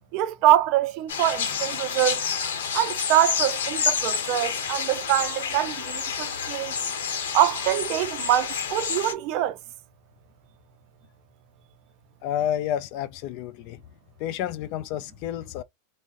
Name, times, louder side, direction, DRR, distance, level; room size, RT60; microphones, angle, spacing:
voice 1, 0.1-2.2 2.7-6.7 7.3-9.6, right 13 dB, 50° right, 0.4 m, -24 dB
sound 1, 1.1-9.1, left 7 dB, 90° left, 0.8 m, -29 dB
voice 2, 12.2-13.8 14.2-15.6, left 11 dB, 50° left, 0.4 m, -30 dB
2.4 x 2.0 x 3.5 m
supercardioid pair, 140°, 0 cm